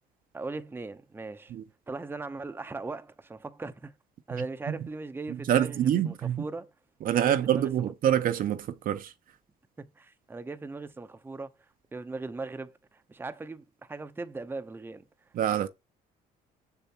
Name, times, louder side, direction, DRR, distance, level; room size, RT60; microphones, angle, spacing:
voice 1, 0.3-1.5 1.9-3.9 4.3-6.7 7.2-7.9 9.8-11.5 11.9-15.0, right 3 dB, 15° right, 0.6 m, -39 dB
voice 2, 5.3-6.4 7.0-9.1 15.3-15.7, right 10 dB, 55° right, 0.7 m, -26 dB
6.9 x 6.8 x 2.9 m
cardioid pair, 110°, 17 cm